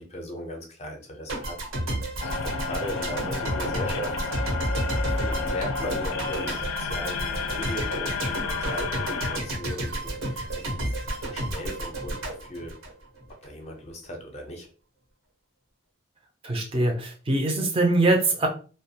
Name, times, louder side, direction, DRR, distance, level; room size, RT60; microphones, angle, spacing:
voice 1, 0.0-1.6 2.2-4.1 5.2-10.9 11.3-12.2 12.5-12.7 13.4-14.7, equal, 30° left, 2 dB, 0.5 m, -38 dB
sound 1, 1.3-13.5, right 1 dB, 90° right, 0.9 m, -31 dB
sound 2, 2.2-9.4, left 5 dB, 85° left, 0.4 m, -31 dB
voice 2, 16.4-18.5, right 2 dB, 25° right, 2 dB, 0.4 m, -23 dB
2.3 x 2.1 x 2.7 m, 0.37 s
head